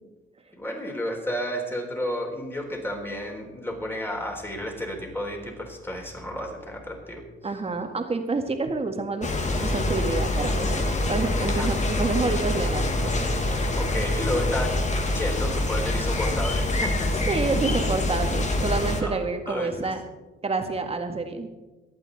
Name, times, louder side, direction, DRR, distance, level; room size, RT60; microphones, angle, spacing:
voice 1, 0.6-7.2 11.5-11.7 13.8-14.8 15.1-17.1 19.0-19.9, left 1 dB, 10° left, 1 dB, 4.0 m, -32 dB
voice 2, 7.4-9.3 9.6-13.3 17.2-20.0 20.4-21.5, right 3 dB, 30° right, 5 dB, 1.8 m, -28 dB
sound 1, 9.2-19.0, left 1 dB, 35° left, 1.9 m, -25 dB
23.5 x 9.0 x 4.1 m, 1.1 s
cardioid pair, 90°, 20 cm